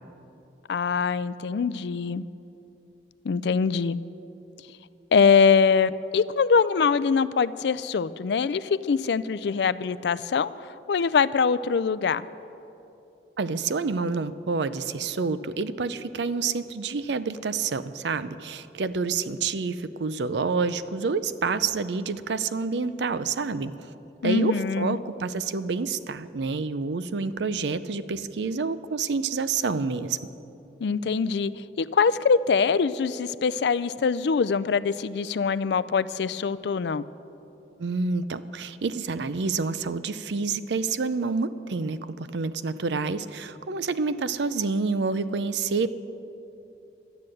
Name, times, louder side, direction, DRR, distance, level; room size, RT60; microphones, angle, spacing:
voice 1, 0.7-2.2 3.2-4.0 5.1-12.3 24.2-25.0 30.8-37.0, left 5 dB, 70° left, 17 dB, 0.4 m, -23 dB
voice 2, 13.4-23.7 24.2-30.3 37.8-45.9, right 4 dB, 80° right, 14 dB, 0.5 m, -28 dB
13.0 x 9.7 x 7.7 m, 2.9 s
head